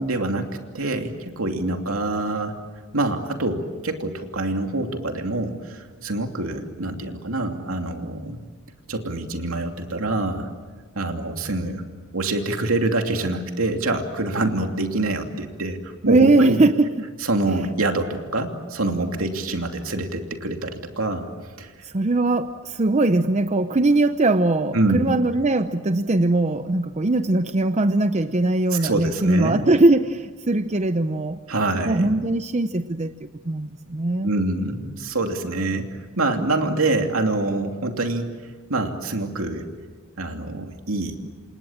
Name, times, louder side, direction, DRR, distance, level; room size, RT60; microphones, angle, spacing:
voice 1, 0.0-2.6 2.9-8.4 8.9-10.5 10.9-11.8 12.1-16.6 17.2-21.3 21.6-21.7 24.7-25.1 28.7-29.7 31.5-32.1 34.2-35.9 36.2-38.3 38.7-39.7 40.2-41.2, right 2 dB, 75° right, 4 dB, 2.8 m, -25 dB
voice 2, 16.1-16.9 21.8-31.4 31.9-34.3, right 2 dB, 35° right, 10 dB, 0.7 m, -20 dB
28.5 x 27.0 x 7.4 m, 1.4 s
head